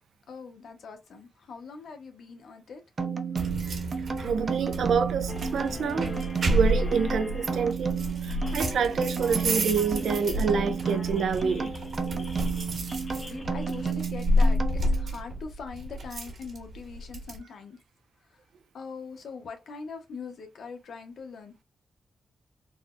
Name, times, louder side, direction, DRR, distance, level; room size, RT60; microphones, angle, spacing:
voice 1, 0.3-2.8 12.1-12.3 13.5-17.8 18.3-18.4 18.7-21.5, left 5 dB, 80° left, 0.9 m, -42 dB
sound 1, 3.0-15.1, right 6 dB, 40° right, 0.5 m, -33 dB
sound 2, 3.4-17.4, equal, 65° right, 1.5 m, -30 dB
voice 2, 4.2-6.1 6.4-11.8, right 6 dB, 90° right, 0.5 m, -27 dB
sound 3, 5.3-13.9, left 2 dB, 35° left, 0.8 m, -43 dB
4.0 x 2.1 x 2.4 m
wide cardioid pair, 120°, 0 cm